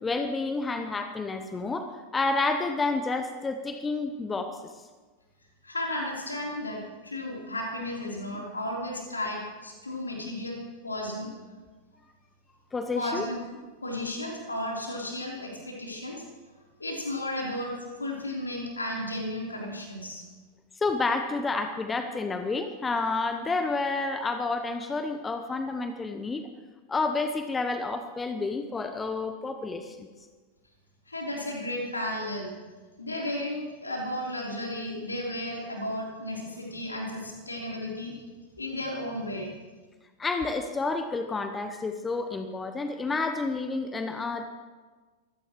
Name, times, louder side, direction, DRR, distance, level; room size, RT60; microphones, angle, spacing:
voice 1, 0.0-4.7 8.3-8.4 12.7-13.3 20.7-26.5 26.9-30.1 40.2-44.5, left 3 dB, 15° left, 7 dB, 0.9 m, -30 dB
voice 2, 5.6-11.3 12.9-13.4 13.8-16.2 16.8-17.7 18.0-20.2 31.1-32.5 33.0-38.1 38.6-39.5, left 1 dB, 80° left, -2 dB, 3.8 m, -34 dB
24.0 x 16.5 x 3.2 m, 1.4 s
figure-of-eight pair, 90°, 0 cm